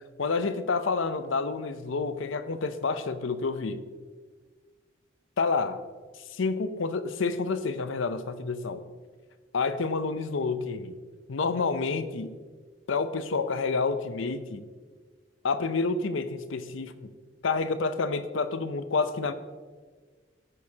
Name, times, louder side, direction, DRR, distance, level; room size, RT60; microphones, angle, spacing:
voice 1, 0.2-3.8 5.4-5.8 6.3-8.8 9.5-10.9 11.3-12.4 12.9-14.6 15.4-16.9 17.4-19.3, left 4 dB, 80° left, 11 dB, 0.6 m, -29 dB
15.0 x 6.3 x 2.8 m, 1.5 s
head